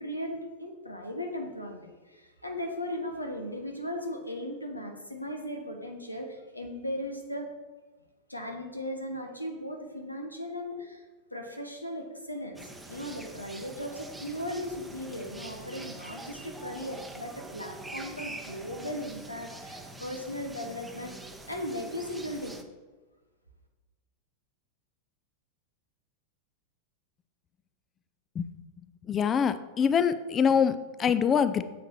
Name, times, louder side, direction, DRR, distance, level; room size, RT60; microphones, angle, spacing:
voice 1, 0.0-7.5 8.3-11.0 11.3-12.6 12.9-21.2 21.5-22.6, left 1 dB, 85° left, 3 dB, 1.0 m, -37 dB
sound 1, 12.6-22.6, right 2 dB, 5° right, 0.8 m, -44 dB
voice 2, 29.1-31.6, left 7 dB, 25° left, 13 dB, 0.5 m, -24 dB
7.3 x 6.5 x 4.3 m, 1.3 s
figure-of-eight pair, 90°, 0 cm